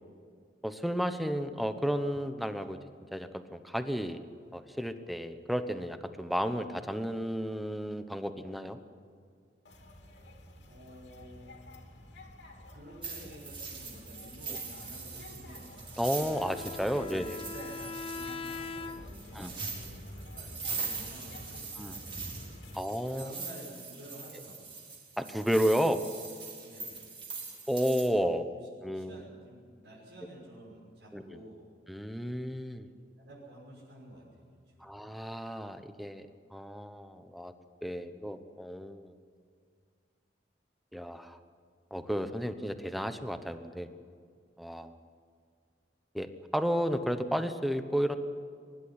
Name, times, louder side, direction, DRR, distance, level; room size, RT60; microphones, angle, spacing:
voice 1, 0.6-2.8 3.1-4.2 4.5-8.8 16.0-17.4 19.3-19.5 21.8-21.9 22.7-23.3 25.2-26.0 27.7-28.5 28.8-29.2 31.1-31.4 31.9-32.9 34.8-37.5 37.8-39.1 40.9-41.4 41.9-43.9 44.6-44.9 46.1-48.2, equal, ahead, 9 dB, 1.0 m, -32 dB
sound 1, 9.7-22.8, left 1 dB, 85° left, 3.2 m, -50 dB
voice 2, 10.6-11.5 12.7-15.7 17.0-22.8 23.1-24.8 26.6-27.0 28.5-31.6 33.2-34.9, right 1 dB, 85° right, -6 dB, 6.3 m, -51 dB
sound 2, 13.0-28.1, right 4 dB, 30° right, 4.3 m, -42 dB
Bowed string instrument, 16.3-19.3, left 4 dB, 35° left, 0.6 m, -41 dB
23.5 x 11.5 x 9.8 m, 2.1 s
head